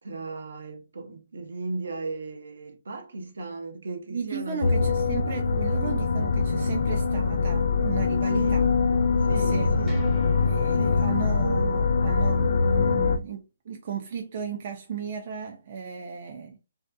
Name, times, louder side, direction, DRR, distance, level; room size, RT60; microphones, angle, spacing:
voice 1, 0.0-4.9 8.3-8.6 9.2-10.0 10.7-11.3, right 3 dB, 75° right, 0.8 m, -36 dB
voice 2, 4.1-8.7 9.5-9.7 10.5-16.6, right 6 dB, 45° right, 0.4 m, -35 dB
sound 1, 4.6-13.2, left 4 dB, 60° left, 0.4 m, -23 dB
sound 2, 7.8-13.3, right 2 dB, 10° right, 0.9 m, -48 dB
2.7 x 2.4 x 2.2 m
hypercardioid pair, 150°, 0 cm